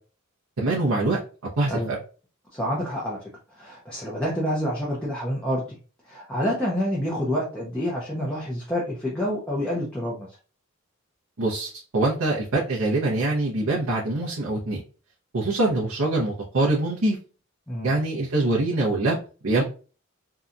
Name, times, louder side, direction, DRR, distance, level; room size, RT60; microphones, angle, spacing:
voice 1, 0.6-1.2 1.6-2.0 11.4-14.8 15.3-17.2 17.8-19.2 19.4-19.6, right 2 dB, 85° right, -5 dB, 0.7 m, -24 dB
voice 2, 1.7-2.0 2.5-3.3 3.6-5.8 6.0-10.3 17.7-17.9, equal, 5° left, -6 dB, 0.5 m, -28 dB
2.8 x 2.2 x 2.4 m, 0.37 s
head